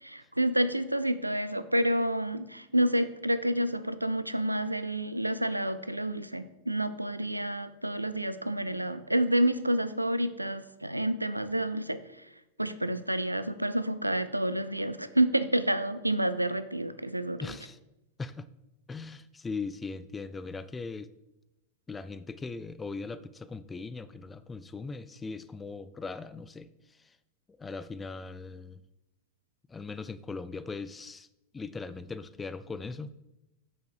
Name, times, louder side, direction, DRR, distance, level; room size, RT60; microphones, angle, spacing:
voice 1, 0.0-12.0 12.6-17.4, right 1 dB, 85° right, 13 dB, 0.3 m, -29 dB
voice 2, 17.4-17.8 18.2-18.5 18.9-21.1 21.9-27.2 27.6-28.8 29.7-31.3 31.5-33.1, left 4 dB, 15° left, 16 dB, 0.3 m, -39 dB
6.3 x 5.3 x 4.7 m, 0.93 s
figure-of-eight pair, 90°, 0 cm